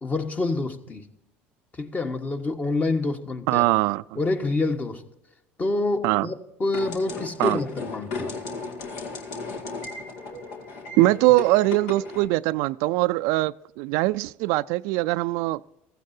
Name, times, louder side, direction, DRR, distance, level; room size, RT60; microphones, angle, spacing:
voice 1, 0.0-1.0 1.8-3.7 4.1-5.0 5.6-8.4, left 2 dB, 25° left, 1.4 m, -27 dB
voice 2, 3.5-4.2 6.0-6.3 7.4-7.6 11.0-15.7, right 19 dB, 75° right, 0.3 m, -22 dB
sound 1, 6.7-12.3, left 4 dB, 75° left, 2.0 m, -35 dB
15.0 x 15.0 x 2.7 m
supercardioid pair, 90°, 6 cm